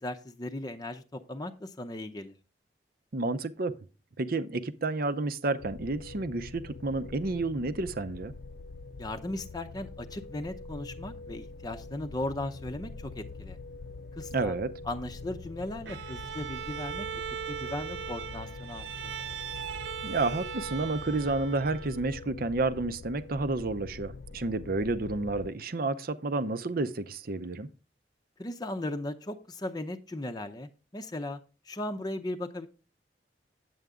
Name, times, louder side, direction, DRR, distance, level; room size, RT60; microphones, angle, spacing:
voice 1, 0.0-2.3 9.0-13.6 14.1-14.5 14.8-17.1 17.5-19.1 28.4-31.4 31.6-32.7, left 1 dB, 25° left, 0.6 m, -37 dB
voice 2, 3.1-3.8 4.2-8.3 14.3-14.7 20.0-27.7, right 3 dB, 55° right, 0.7 m, -30 dB
sound 1, 5.6-25.5, left 3 dB, 60° left, 0.4 m, -44 dB
Bowed string instrument, 15.9-22.2, right 9 dB, 90° right, 0.6 m, -39 dB
9.3 x 8.0 x 3.6 m
head